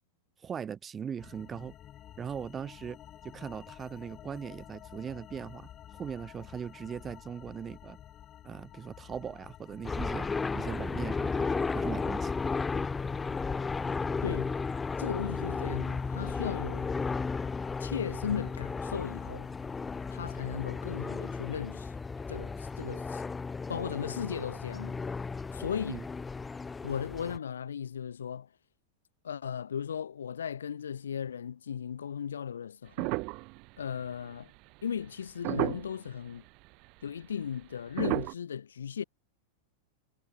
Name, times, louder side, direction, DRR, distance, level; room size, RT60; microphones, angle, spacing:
voice 1, 0.4-1.7 2.2-3.0 3.2-5.7 6.0-8.0 8.4-10.3 10.5-12.4 25.9-26.0, right 7 dB, 20° right, 1.8 m, -39 dB
sound 1, 1.2-20.4, left 11 dB, 30° left, 1.3 m, -49 dB
sound 2, 9.8-27.4, left 4 dB, 15° left, 1.6 m, -34 dB
voice 2, 15.0-16.9 17.8-19.5 20.1-21.9 22.3-23.2 23.7-25.0 25.5-26.0 26.8-28.5 29.2-33.2 33.8-34.5 34.8-36.4 37.0-39.0, left 8 dB, 65° left, 1.9 m, -36 dB
sound 3, 33.0-34.3 35.0-35.1 35.4-36.1 36.8-36.9 38.0-38.3, right 27 dB, 45° right, 1.4 m, -32 dB
figure-of-eight pair, 90°, 0 cm